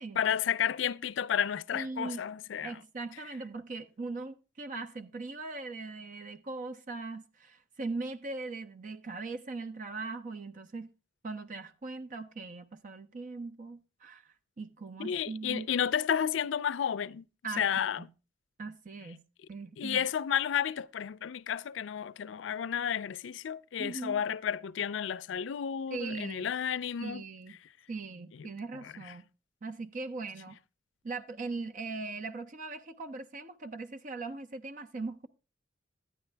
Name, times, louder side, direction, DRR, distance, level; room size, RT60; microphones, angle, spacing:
voice 1, 0.2-2.8 15.0-17.2 17.6-18.1 19.8-27.2 28.4-28.5 28.8-28.9, left 8 dB, 75° left, 0.4 m, -32 dB
voice 2, 1.7-2.2 2.6-10.9 11.2-14.3 14.6-15.7 17.4-17.7 18.0-18.1 18.6-19.2 19.5-20.0 23.8-24.2 25.9-26.5 27.0-27.6 27.9-29.2 29.6-30.6 31.0-35.3, right 3 dB, 45° right, 0.5 m, -40 dB
10.5 x 9.8 x 3.3 m
head